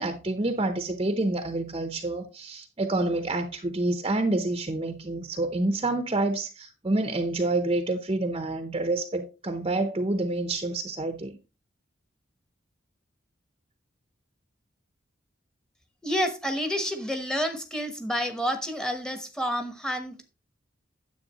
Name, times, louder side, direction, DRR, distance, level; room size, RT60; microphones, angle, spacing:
voice 1, 0.0-11.4, right 2 dB, 30° right, 0.7 m, -28 dB
voice 2, 16.0-20.3, equal, 5° left, 1.1 m, -29 dB
9.9 x 7.7 x 3.0 m
head